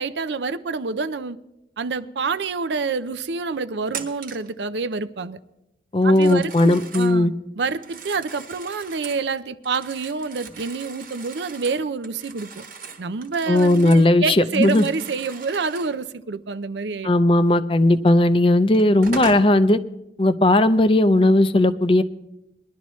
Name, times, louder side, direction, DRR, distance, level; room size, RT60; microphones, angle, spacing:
voice 1, 0.0-1.4 1.8-5.4 6.0-7.3 7.6-12.6 13.0-17.1, right 4 dB, 80° right, 0.5 m, -27 dB
Telephone, 3.9-4.5 6.0-7.2 7.7-9.3 9.6-14.1 14.4-16.0 18.1-18.2 18.7-19.5, right 4 dB, 50° right, 1.3 m, -38 dB
voice 2, 5.9-7.3 13.5-14.9 17.0-19.8 20.2-22.0, left 1 dB, 30° left, 0.5 m, -17 dB
20.5 x 11.5 x 3.1 m
head